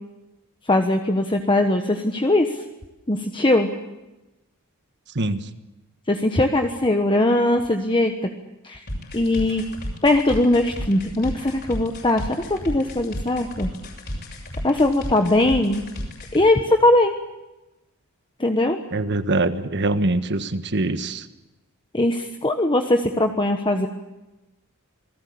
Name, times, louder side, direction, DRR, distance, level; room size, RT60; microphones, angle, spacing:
voice 1, 0.7-2.6 3.1-3.7 6.1-8.1 8.6-8.8 9.1-9.6 10.0-13.7 14.6-15.8 16.3-17.2 18.4-18.8 21.9-23.9, left 1 dB, 20° left, 5 dB, 1.3 m, -20 dB
voice 2, 5.1-5.5 18.9-21.3, right 2 dB, 55° right, 11 dB, 1.5 m, -23 dB
sound 1, 8.9-16.4, equal, 50° left, 7.4 m, -32 dB
27.5 x 19.5 x 8.6 m, 1.0 s
head